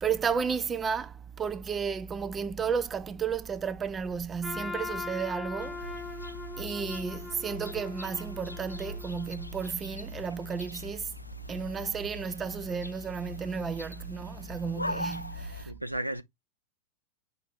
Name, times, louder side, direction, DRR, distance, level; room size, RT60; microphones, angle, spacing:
voice 1, 0.0-6.0 6.6-11.1 11.5-15.7, right 6 dB, 20° right, 0.4 m, -33 dB
Trumpet, 4.4-9.5, left 3 dB, ahead, 0.9 m, -40 dB
sound 1, 5.6-15.6, left 1 dB, 85° left, 0.3 m, -41 dB
voice 2, 15.6-16.2, right 1 dB, 90° right, 0.6 m, -34 dB
5.7 x 2.4 x 3.7 m
figure-of-eight pair, 90°, 0 cm